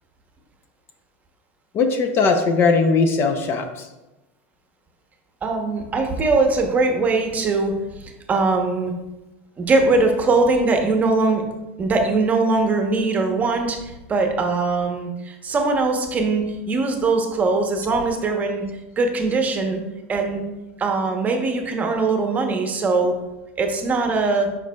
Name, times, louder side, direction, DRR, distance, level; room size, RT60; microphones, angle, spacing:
voice 1, 1.7-3.9, left 4 dB, 35° left, 6 dB, 0.6 m, -19 dB
voice 2, 5.4-8.9 9.6-11.4 11.8-18.6 19.0-19.8 20.1-20.4 20.8-23.2 23.6-24.5, right 3 dB, 20° right, 3 dB, 0.9 m, -21 dB
7.9 x 5.3 x 2.3 m, 1.0 s
supercardioid pair, 130°, 7 cm